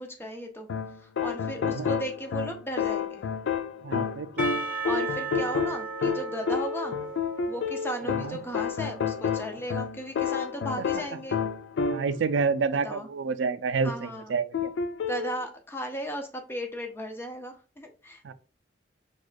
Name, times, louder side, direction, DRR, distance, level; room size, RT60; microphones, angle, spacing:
voice 1, 0.0-3.2 4.9-7.0 7.5-11.4 12.8-13.1 13.8-14.3 15.1-18.3, equal, 15° left, 0.5 m, -36 dB
sound 1, 0.7-12.3 14.5-15.4, left 6 dB, 80° left, 0.3 m, -30 dB
voice 2, 3.8-4.6 8.1-8.4 10.8-11.0 11.9-14.7 18.2-18.3, right 5 dB, 85° right, 0.4 m, -29 dB
Percussion / Church bell, 4.4-9.2, right 4 dB, 10° right, 1.2 m, -36 dB
6.1 x 2.3 x 2.4 m
head